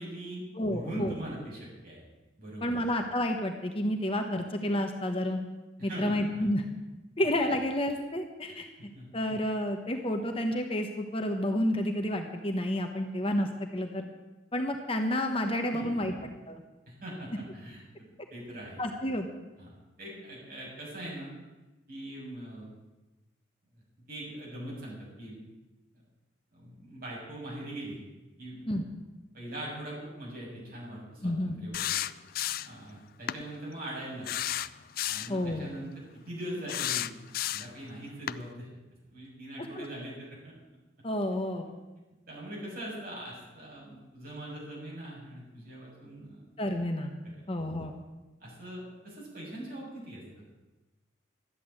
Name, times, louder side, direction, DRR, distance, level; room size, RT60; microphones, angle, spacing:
voice 1, 0.0-2.0 2.4-2.9 5.8-6.1 8.5-8.6 8.9-9.1 15.7-16.2 16.9-17.8 18.3-18.8 19.6-19.7 20.0-21.3 21.9-22.7 24.1-25.4 26.5-28.1 28.4-28.7 29.3-32.0 32.7-34.5 35.1-35.9 36.3-37.1 37.5-38.7 39.1-40.5 42.3-46.4 47.2-47.4 48.4-50.5, right 1 dB, 45° right, -4 dB, 7.0 m, -41 dB
voice 2, 0.5-1.1 2.6-5.4 5.8-6.6 7.2-8.7 9.1-14.1 14.5-16.1 16.5-16.6 18.8-19.3 28.7-28.8 31.2-31.6 35.3-35.7 39.6-39.9 41.0-41.7 46.6-47.1 47.5-47.9, left 1 dB, 30° left, 4 dB, 1.1 m, -30 dB
sound 1, 31.7-32.8 33.3-33.4 34.2-35.4 36.7-37.8 38.3-38.4, left 12 dB, 50° left, 0.4 m, -32 dB
13.0 x 8.5 x 9.8 m, 1.1 s
head